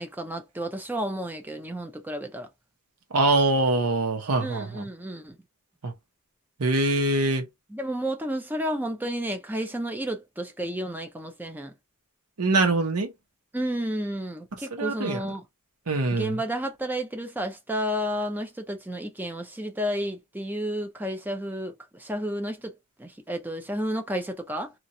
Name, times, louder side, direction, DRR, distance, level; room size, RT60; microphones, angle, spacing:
voice 1, 0.0-2.5 4.4-5.4 7.7-11.7 13.5-15.4 16.1-22.7 23.0-24.7, equal, 10° right, 0.5 m, -31 dB
voice 2, 3.1-4.9 5.8-5.9 6.6-7.4 12.4-13.1 14.7-15.2 15.9-16.4, right 2 dB, 90° right, 1.0 m, -23 dB
3.0 x 2.5 x 2.6 m
head